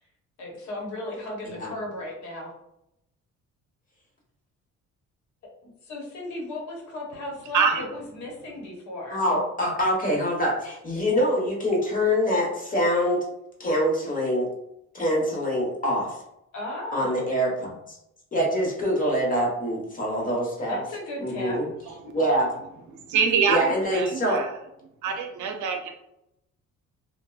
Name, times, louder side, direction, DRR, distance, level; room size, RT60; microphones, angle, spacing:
voice 1, 0.4-2.5 5.8-9.2 16.5-17.3 20.7-21.6, left 1 dB, 70° left, -1 dB, 1.0 m, -35 dB
voice 2, 7.5-7.9 21.8-22.2 23.1-24.5 25.0-25.9, right 6 dB, 75° right, 4 dB, 0.6 m, -25 dB
voice 3, 9.1-13.2 13.6-14.5 14.9-16.2 16.9-18.0 18.3-20.8 21.2-21.7 22.1-22.5 23.5-24.4, equal, 30° left, -2 dB, 1.0 m, -25 dB
2.8 x 2.1 x 2.3 m, 0.80 s
cardioid pair, 90°, 30 cm